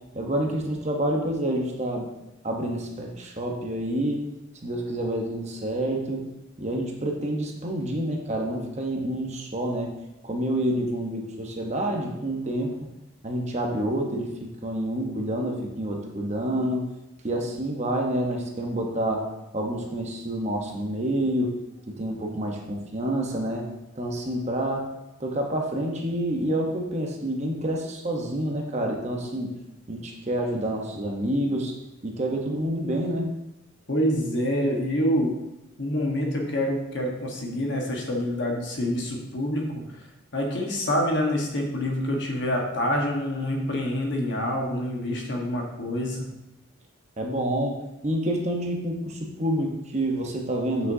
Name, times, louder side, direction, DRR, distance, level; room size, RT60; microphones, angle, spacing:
voice 1, 0.1-2.1 2.4-4.2 4.6-6.2 6.6-10.0 10.2-12.7 13.2-16.8 17.2-21.5 21.9-23.7 23.9-24.9 25.2-29.5 29.9-31.7 32.0-33.3 47.2-50.9, right 1 dB, 30° right, 1 dB, 0.9 m, -28 dB
voice 2, 33.9-35.3 35.8-39.6 40.3-46.3, left 1 dB, 55° left, 0 dB, 1.2 m, -26 dB
8.2 x 6.1 x 2.7 m, 0.94 s
head